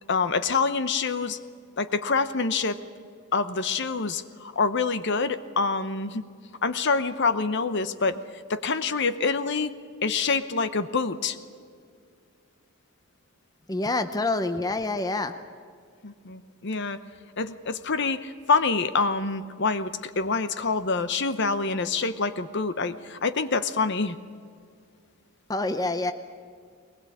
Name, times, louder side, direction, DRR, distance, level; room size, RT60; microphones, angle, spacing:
voice 1, 0.1-1.4 1.8-2.8 3.3-6.2 6.6-9.7 10.0-11.4 16.0-17.0 17.4-24.2, left 4 dB, 55° left, 12 dB, 0.8 m, -26 dB
voice 2, 13.7-15.3 25.5-26.1, left 2 dB, 15° left, 9 dB, 0.7 m, -27 dB
21.5 x 20.0 x 8.5 m, 2.2 s
head